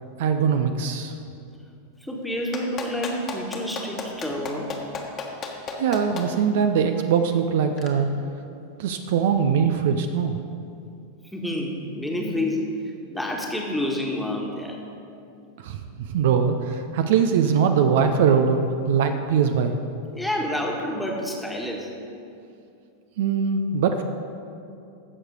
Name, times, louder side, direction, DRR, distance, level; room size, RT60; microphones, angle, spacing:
voice 1, 0.2-1.1 5.8-8.1 8.8-10.4 15.6-19.8 23.2-24.0, right 6 dB, 55° right, 7 dB, 0.6 m, -22 dB
voice 2, 2.0-4.7 6.1-6.2 11.3-14.8 20.1-21.9, left 1 dB, 5° left, -1 dB, 1.5 m, -29 dB
Clapping, 2.5-6.3 7.8-7.9, left 5 dB, 30° left, 1.3 m, -33 dB
15.0 x 6.5 x 4.7 m, 2.6 s
figure-of-eight pair, 90°, 0 cm